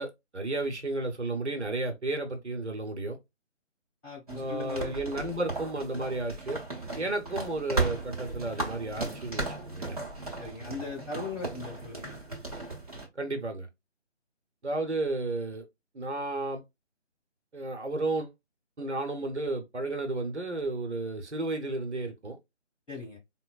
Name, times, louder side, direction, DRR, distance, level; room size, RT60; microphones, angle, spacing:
voice 1, 0.0-3.2 4.3-6.6 6.9-10.0 13.2-13.7 14.6-15.6 15.9-16.6 17.5-18.3 18.8-22.4, right 2 dB, 65° right, 0.8 m, -32 dB
voice 2, 4.0-4.9 10.4-12.2 22.9-23.2, left 4 dB, 10° left, 1.6 m, -39 dB
sound 1, 4.3-13.1, right 3 dB, 30° right, 0.7 m, -36 dB
3.9 x 2.0 x 2.3 m
figure-of-eight pair, 155°, 37 cm